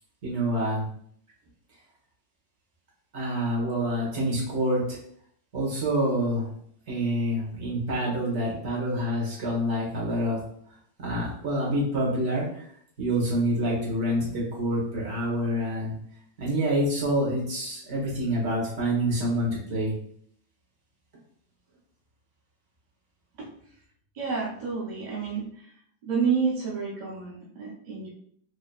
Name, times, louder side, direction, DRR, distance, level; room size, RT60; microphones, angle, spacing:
voice 1, 0.2-0.8 3.1-5.0 5.5-6.5 6.9-10.4 11.0-12.6 13.0-15.9 16.4-19.9, equal, 40° right, -4 dB, 1.3 m, -27 dB
voice 2, 24.1-25.5 26.0-28.1, right 5 dB, 80° right, -4 dB, 0.4 m, -29 dB
4.9 x 2.8 x 2.4 m, 0.64 s
omnidirectional pair, 2.1 m